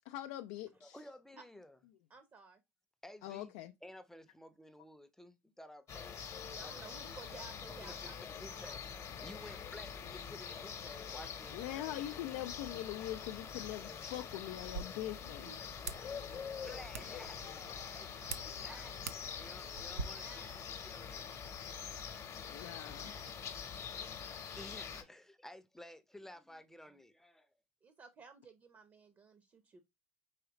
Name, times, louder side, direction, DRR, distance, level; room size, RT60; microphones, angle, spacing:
voice 1, 0.1-1.0 3.2-3.7 11.5-15.5 22.5-23.1, left 14 dB, 65° left, 0.3 m, -42 dB
voice 2, 0.8-1.8 3.0-3.5 3.8-6.2 6.6-7.2 7.8-8.8 9.2-11.6 15.8-18.9 19.3-21.4 23.8-27.5, left 1 dB, 5° left, 0.6 m, -54 dB
voice 3, 2.1-2.6 3.2-3.3 6.4-8.8 9.4-9.6 15.4-16.3 16.6-16.8 18.3-19.0 20.0-20.5 22.7-23.4 27.8-29.8, right 4 dB, 30° right, 0.8 m, -57 dB
sound 1, 5.9-25.0, left 7 dB, 40° left, 0.9 m, -45 dB
sound 2, 14.5-20.0, right 5 dB, 90° right, 0.4 m, -47 dB
4.8 x 3.1 x 2.9 m
hypercardioid pair, 75°, 8 cm